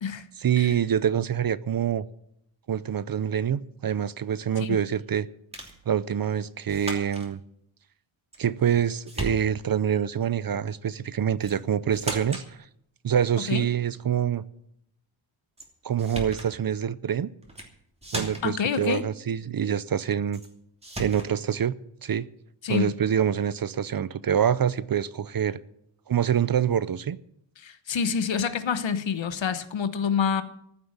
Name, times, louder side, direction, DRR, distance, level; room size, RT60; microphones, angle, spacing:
voice 1, 0.4-2.0 2.7-5.3 5.9-7.4 8.4-12.6 13.0-14.4 15.8-17.3 18.1-20.4 21.0-21.7 22.0-22.3 22.7-25.6 26.1-27.2, right 9 dB, 45° right, 0.6 m, -26 dB
sound 1, 5.5-5.8 6.7-7.3 8.3-8.8 9.1-9.8 11.4-11.6 11.9-12.5 15.6-15.7 16.0-16.5 17.4-17.7 18.0-18.6 20.3-20.5 20.8-21.3, right 1 dB, 10° right, 2.8 m, -36 dB
voice 2, 18.4-19.1 22.6-22.9 27.6-30.4, left 6 dB, 65° left, 1.2 m, -27 dB
14.5 x 7.5 x 9.5 m
wide cardioid pair, 125°, 49 cm